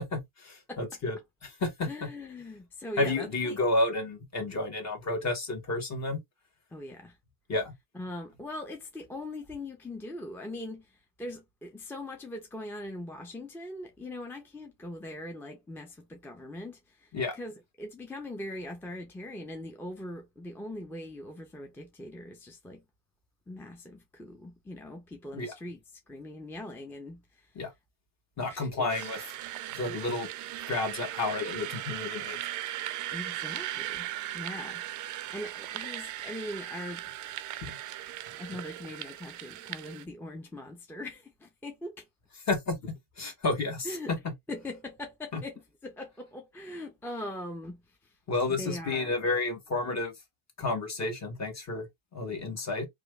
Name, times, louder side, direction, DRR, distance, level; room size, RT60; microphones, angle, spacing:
voice 1, 0.0-2.1 3.0-6.2 7.5-7.7 17.1-17.3 25.3-25.5 27.5-27.7 28.4-29.2 29.7-30.3 30.7-32.4 37.6-37.8 42.5-44.3 45.3-45.4 48.3-50.1 50.6-51.9 52.1-52.9, left 2 dB, 40° left, 1.4 m, -31 dB
voice 2, 1.8-3.6 6.7-7.2 7.9-10.9 11.2-22.8 23.5-25.8 26.1-27.5 28.5-29.1 33.1-34.8 35.3-37.6 38.0-42.0 43.8-44.1 44.5-47.8 48.5-49.2, left 1 dB, 5° left, 0.5 m, -41 dB
sound 1, 28.9-40.0, right 13 dB, 50° right, 0.4 m, -38 dB
3.0 x 2.4 x 3.1 m
cardioid pair, 105°, 41 cm